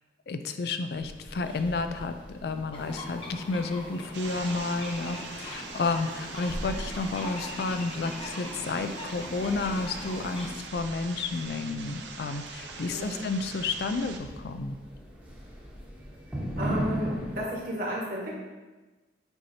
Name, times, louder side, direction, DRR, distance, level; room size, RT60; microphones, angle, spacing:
voice 1, 0.3-14.8, left 3 dB, 60° left, 8 dB, 0.4 m, -31 dB
sound 1, 1.0-17.4, equal, 10° right, 1.0 m, -40 dB
sound 2, 2.7-10.5, left 1 dB, 30° left, 0.8 m, -41 dB
sound 3, 4.1-14.2, right 5 dB, 85° right, 0.6 m, -43 dB
voice 2, 12.9-13.2 16.6-18.4, equal, 55° right, -3 dB, 1.5 m, -32 dB
7.9 x 4.3 x 2.8 m, 1.2 s
head